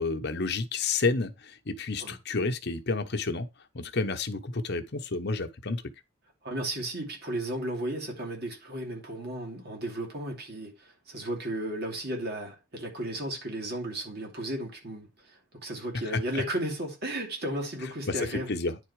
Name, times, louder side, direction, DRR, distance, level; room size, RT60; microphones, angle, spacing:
voice 1, 0.0-3.5 3.7-5.8 16.1-16.4 18.1-18.8, left 3 dB, 55° left, 1.0 m, -30 dB
voice 2, 6.4-18.5, right 1 dB, 55° right, 2.7 m, -34 dB
9.9 x 4.3 x 4.8 m
head